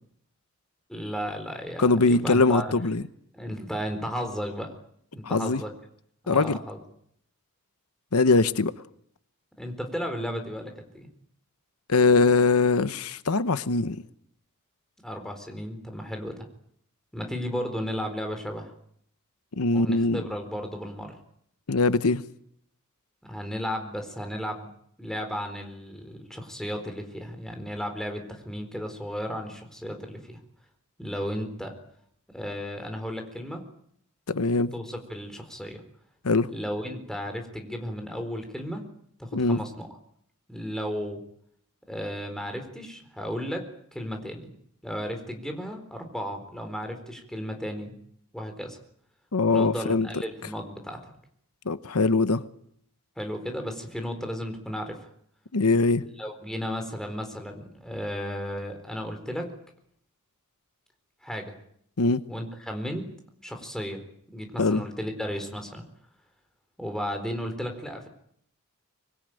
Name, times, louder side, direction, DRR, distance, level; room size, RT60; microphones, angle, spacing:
voice 1, 0.9-2.7 3.3-4.7 5.1-5.7 6.2-6.8 9.6-11.1 15.0-16.5 17.1-18.7 19.7-21.2 23.2-24.7 25.0-30.4 31.0-31.7 32.3-33.6 34.7-35.8 36.5-38.9 39.2-39.9 40.5-41.2 41.9-44.5 44.8-48.0 48.3-48.8 49.5-51.0 53.2-55.1 56.2-59.5 61.2-61.5 62.3-63.1 63.4-64.0 64.3-65.8 66.8-68.1, equal, ahead, 4.1 m, -34 dB
voice 2, 1.8-3.0 5.2-5.6 6.3-6.6 8.1-8.7 11.9-14.0 19.6-20.2 21.7-22.2 34.3-34.7 36.2-36.5 39.3-39.6 49.3-50.1 51.6-52.4 55.5-56.0 62.0-62.2 64.6-64.8, left 3 dB, 85° left, 0.9 m, -22 dB
25.0 x 21.0 x 9.1 m
head